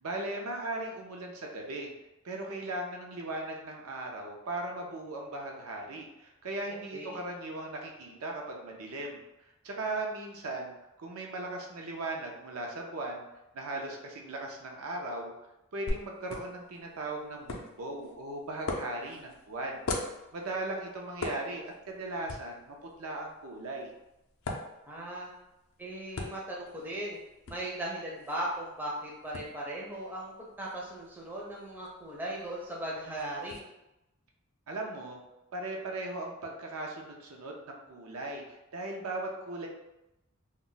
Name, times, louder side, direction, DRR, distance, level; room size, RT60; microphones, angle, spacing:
voice 1, 0.0-1.9 2.2-9.2 9.6-10.7 11.0-13.2 13.5-15.3 15.7-23.9 34.7-35.2 35.5-39.7, right 2 dB, 75° right, 0 dB, 0.5 m, -38 dB
sound 1, 15.9-33.6, left 2 dB, 65° left, 0.4 m, -43 dB
voice 2, 24.9-25.3 25.8-27.2 27.5-33.6, right 1 dB, 10° right, -5 dB, 0.5 m, -38 dB
2.2 x 2.1 x 3.8 m, 0.92 s
head